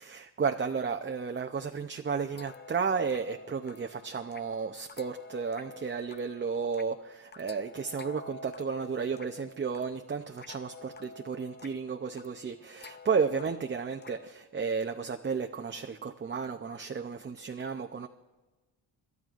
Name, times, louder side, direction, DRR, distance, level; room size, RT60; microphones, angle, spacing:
voice 1, 0.0-18.1, right 5 dB, 25° right, 4 dB, 0.6 m, -33 dB
sound 1, 2.4-14.3, left 2 dB, 25° left, 0.5 m, -49 dB
27.0 x 12.5 x 2.5 m, 1.2 s
cardioid pair, 90°, 45 cm